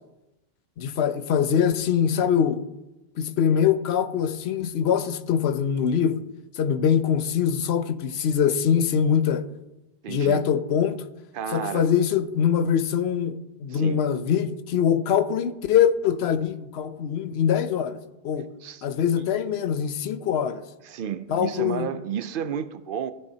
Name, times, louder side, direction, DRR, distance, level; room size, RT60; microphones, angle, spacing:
voice 1, 0.8-2.6 3.2-6.2 6.5-9.4 10.1-11.0 11.5-18.5 18.8-20.6 21.3-21.9, left 8 dB, 80° left, 0.9 m, -23 dB
voice 2, 10.0-10.4 11.3-11.9 13.7-14.0 18.6-18.9 19.1-19.3 20.8-23.1, right 8 dB, 65° right, 0.7 m, -32 dB
14.5 x 6.9 x 2.8 m
omnidirectional pair, 1.0 m